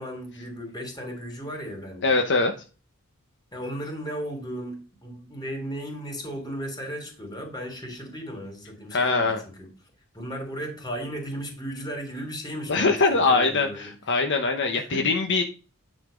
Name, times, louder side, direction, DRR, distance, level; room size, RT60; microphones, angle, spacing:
voice 1, 0.0-2.1 3.5-9.7 10.1-13.9 14.7-15.1, equal, 20° left, 3 dB, 3.2 m, -35 dB
voice 2, 2.0-2.5 8.9-9.4 12.7-15.4, left 3 dB, 55° left, 4 dB, 1.0 m, -22 dB
9.8 x 4.2 x 5.1 m, 0.35 s
head